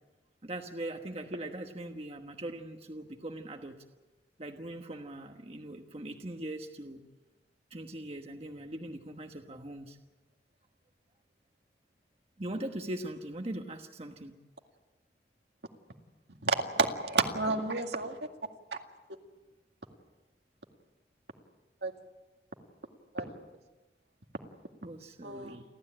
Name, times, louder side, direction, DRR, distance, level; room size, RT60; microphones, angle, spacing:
voice 1, 0.4-3.8 4.4-7.0 7.7-10.0 12.4-14.3 24.8-25.6, right 1 dB, 35° right, 4 dB, 1.3 m, -41 dB
voice 2, 16.4-18.2 21.8-21.9 23.1-23.3 25.2-25.6, right 3 dB, 75° right, 4 dB, 2.1 m, -30 dB
29.5 x 13.0 x 8.8 m, 1.2 s
head